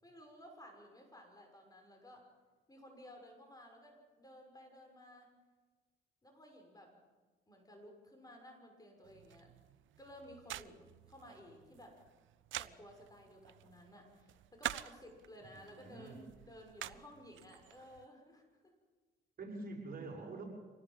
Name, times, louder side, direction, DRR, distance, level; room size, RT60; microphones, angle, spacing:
voice 1, 0.0-2.2 2.7-5.3 6.2-6.9 7.5-9.5 10.0-12.0 12.6-18.7, equal, 20° left, 3 dB, 6.3 m, -56 dB
sound 1, 9.0-18.1, right 14 dB, 75° right, 0.7 m, -48 dB
voice 2, 15.4-16.2 19.4-20.5, right 2 dB, 45° right, 0 dB, 6.5 m, -46 dB
26.0 x 18.5 x 7.5 m, 1.3 s
cardioid pair, 90°, 20 cm